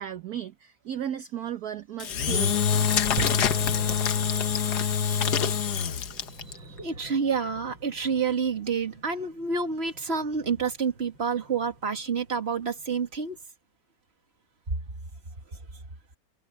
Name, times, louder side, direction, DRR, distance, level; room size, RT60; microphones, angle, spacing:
voice 1, 0.0-2.7, right 9 dB, 55° right, 1.4 m, -35 dB
Engine / Drill, 2.0-6.5, left 7 dB, 60° left, 1.5 m, -25 dB
sound 1, 3.2-13.4, right 1 dB, 75° right, 8.7 m, -43 dB
voice 2, 6.5-13.4, right 5 dB, 30° right, 2.1 m, -28 dB
omnidirectional pair, 2.2 m